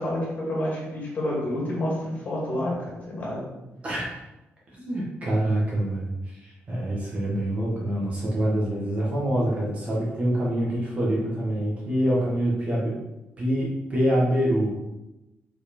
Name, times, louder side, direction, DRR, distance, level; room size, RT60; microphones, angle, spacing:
voice 1, 0.0-2.7 3.1-3.5, left 1 dB, 40° left, -5 dB, 2.3 m, -28 dB
voice 2, 3.8-4.2 4.7-13.0 13.4-14.7, right 1 dB, 30° right, -5 dB, 1.7 m, -25 dB
5.3 x 4.8 x 4.4 m, 0.98 s
wide cardioid pair, 170°, 5 cm